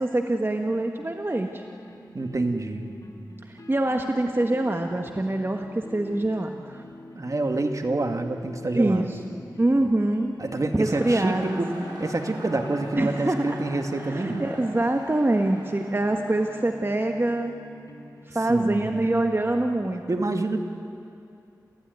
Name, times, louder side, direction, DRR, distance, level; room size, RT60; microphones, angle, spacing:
voice 1, 0.0-1.6 3.5-6.8 8.7-9.2 9.6-10.3 10.7-11.9 12.9-13.6 14.0-17.6 18.3-20.2, right 1 dB, 30° right, 4 dB, 1.4 m, -25 dB
sound 1, 0.7-19.0, left 2 dB, 55° left, 2.7 m, -45 dB
voice 2, 2.1-2.9 7.1-9.1 10.4-14.5 18.5-19.3 20.1-20.6, right 2 dB, 50° right, 5 dB, 2.2 m, -27 dB
sound 2, 10.8-16.6, right 1 dB, 75° right, 7.7 m, -42 dB
28.0 x 15.0 x 9.5 m, 2.6 s
cardioid pair, 40°, 7 cm